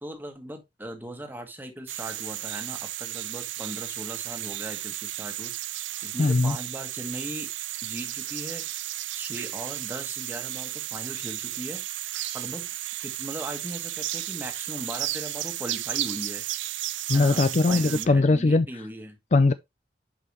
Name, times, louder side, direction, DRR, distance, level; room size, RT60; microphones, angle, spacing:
voice 1, 0.0-7.5 7.8-8.6 9.1-11.8 12.3-12.7 13.0-16.4 17.1-19.2, right 1 dB, 10° right, 1.5 m, -39 dB
sound 1, 1.9-18.1, right 14 dB, 75° right, 0.5 m, -34 dB
voice 2, 6.2-6.6 17.1-18.7 19.3-19.5, left 3 dB, 40° left, 0.4 m, -20 dB
8.6 x 5.6 x 3.0 m
head